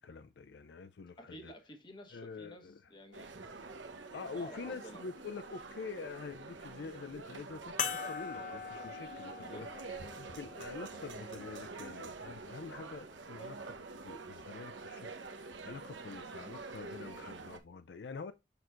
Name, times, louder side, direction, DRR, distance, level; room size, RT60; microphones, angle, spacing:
voice 1, 0.0-1.5 2.1-2.9 4.1-18.3, left 4 dB, 70° left, 0.4 m, -46 dB
voice 2, 1.2-3.3 4.3-5.0 9.3-9.7, equal, 25° left, 1.2 m, -51 dB
sound 1, 3.1-17.6, right 3 dB, 85° right, 1.0 m, -47 dB
sound 2, 7.8-12.6 13.4-13.5 15.6-15.7, left 7 dB, 45° left, 0.8 m, -42 dB
6.8 x 6.1 x 2.5 m
head